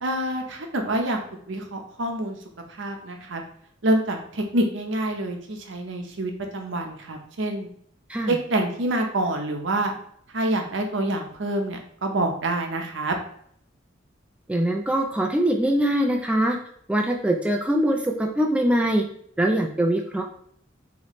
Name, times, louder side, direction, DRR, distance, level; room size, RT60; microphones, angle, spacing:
voice 1, 0.0-1.2 1.5-2.4 2.8-3.4 3.8-7.7 8.3-9.9 10.3-13.2, right 1 dB, 75° right, 3 dB, 0.8 m, -26 dB
voice 2, 14.5-16.6 16.9-19.0 19.4-20.2, right 1 dB, 5° right, 1 dB, 0.3 m, -22 dB
4.1 x 3.0 x 3.0 m, 0.67 s
head